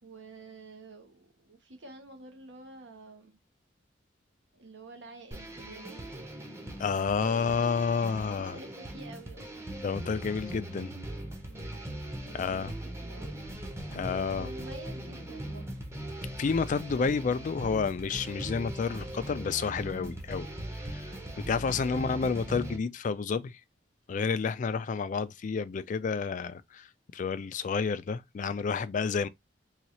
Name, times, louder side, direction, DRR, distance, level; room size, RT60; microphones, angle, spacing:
voice 1, 0.0-3.4 4.5-6.3 7.8-9.7 11.5-11.9 12.2-13.4 14.3-15.7 21.9-22.4, right 2 dB, 70° right, 1.0 m, -49 dB
sound 1, 5.3-22.8, right 1 dB, 15° right, 0.8 m, -40 dB
voice 2, 6.8-8.5 9.8-10.9 12.3-12.7 13.9-14.5 16.4-20.5 20.8-21.0 21.4-23.5 24.1-26.9 27.1-29.3, left 5 dB, 45° left, 0.3 m, -30 dB
4.0 x 2.4 x 2.9 m
head